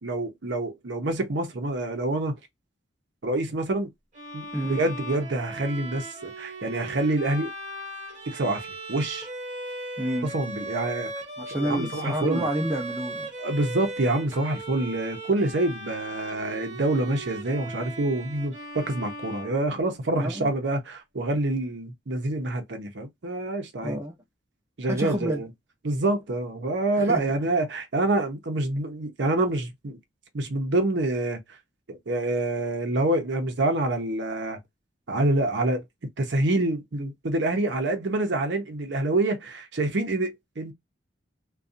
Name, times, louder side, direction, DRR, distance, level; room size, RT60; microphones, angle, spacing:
voice 1, 0.0-2.4 3.2-3.9 4.3-7.5 8.3-9.3 10.3-11.1 11.6-12.4 13.4-24.0 24.8-25.5 25.8-30.0 30.3-31.4 31.9-34.6 35.1-35.8 36.2-40.7, right 2 dB, 70° right, 0.7 m, -27 dB
Bowed string instrument, 4.1-20.2, right 1 dB, 40° right, 1.0 m, -38 dB
voice 2, 10.0-10.3 11.4-13.3 20.1-20.5 23.8-24.2 24.9-25.4 27.0-27.2, right 1 dB, 15° right, 0.6 m, -29 dB
2.6 x 2.3 x 2.4 m
head